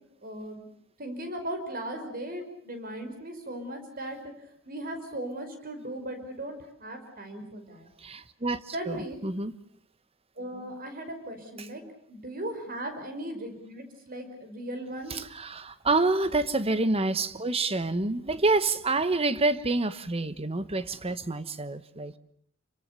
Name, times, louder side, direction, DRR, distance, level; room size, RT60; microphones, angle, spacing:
voice 1, 0.2-0.7 1.0-4.2 4.7-7.9 8.7-9.2 10.4-11.8 12.1-15.2, right 1 dB, 45° right, 7 dB, 5.5 m, -37 dB
voice 2, 8.0-8.6 8.9-9.5 15.1-22.2, right 3 dB, 30° right, 14 dB, 1.2 m, -27 dB
28.5 x 24.5 x 6.9 m, 0.62 s
head